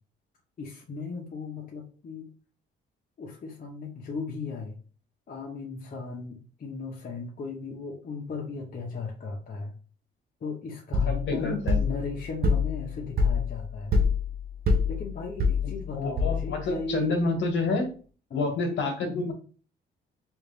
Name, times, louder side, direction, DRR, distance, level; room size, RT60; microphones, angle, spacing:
voice 1, 0.6-2.3 3.2-4.8 5.3-9.7 10.4-14.0 14.9-17.2 18.3-18.5, left 3 dB, 45° left, -2 dB, 0.8 m, -36 dB
sound 1, 10.9-16.7, left 3 dB, 50° right, 0.6 m, -26 dB
voice 2, 11.3-11.8 15.9-17.8 18.3-19.3, left 3 dB, 65° left, 3 dB, 1.4 m, -28 dB
3.3 x 2.5 x 3.3 m, 0.38 s
cardioid pair, 90°, 20 cm